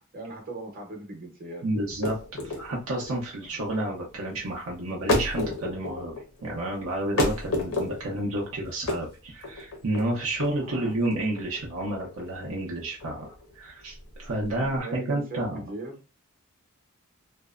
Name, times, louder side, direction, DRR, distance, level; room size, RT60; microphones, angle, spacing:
voice 1, 0.1-1.8 3.4-3.6 8.1-8.3 10.6-10.9 14.6-16.0, right 2 dB, 40° right, 0 dB, 0.9 m, -40 dB
voice 2, 1.6-6.1 6.4-15.7, right 1 dB, 65° right, -3 dB, 0.7 m, -30 dB
sound 1, 1.9-14.8, left 2 dB, 65° left, 0.7 m, -32 dB
2.6 x 2.1 x 2.4 m, 0.31 s
head